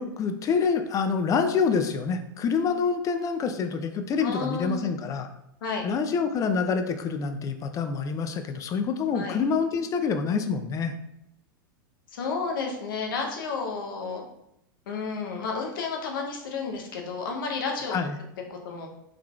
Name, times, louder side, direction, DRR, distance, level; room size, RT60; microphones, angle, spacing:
voice 1, 0.0-5.3 5.8-10.9 17.9-18.2, left 5 dB, 30° left, 7 dB, 0.4 m, -26 dB
voice 2, 4.2-4.9 5.6-5.9 9.1-9.4 12.1-14.2 14.9-17.9 18.5-18.9, left 4 dB, 75° left, 2 dB, 0.7 m, -31 dB
3.5 x 3.2 x 2.3 m, 0.81 s
hypercardioid pair, 100°, 11 cm